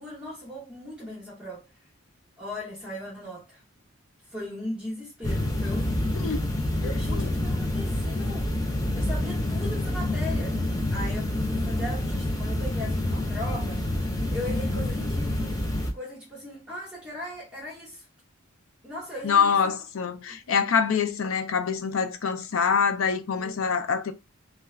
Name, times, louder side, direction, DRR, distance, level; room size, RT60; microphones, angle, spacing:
voice 1, 0.0-1.7 2.4-3.6 4.3-6.1 6.8-8.5 8.9-10.6 10.9-13.8 14.3-15.6 15.9-18.0 18.8-19.7 20.3-20.4 23.4-23.8, left 1 dB, 5° right, 1.0 m, -38 dB
sound 1, 5.2-15.9, left 1 dB, 15° left, 0.5 m, -27 dB
voice 2, 6.8-7.3 19.2-24.1, left 6 dB, 75° left, 0.5 m, -25 dB
2.4 x 2.3 x 3.2 m
head